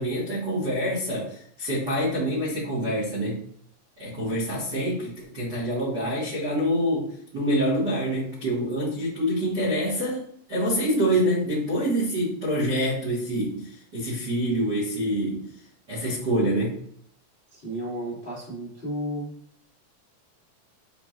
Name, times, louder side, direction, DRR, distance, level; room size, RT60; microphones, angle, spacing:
voice 1, 0.0-3.4 4.0-10.2 10.5-15.4 15.9-16.8, equal, 90° right, -7 dB, 0.9 m, -26 dB
voice 2, 17.5-19.3, equal, 60° left, -8 dB, 0.5 m, -33 dB
7.5 x 2.9 x 2.4 m, 0.64 s
omnidirectional pair, 4.6 m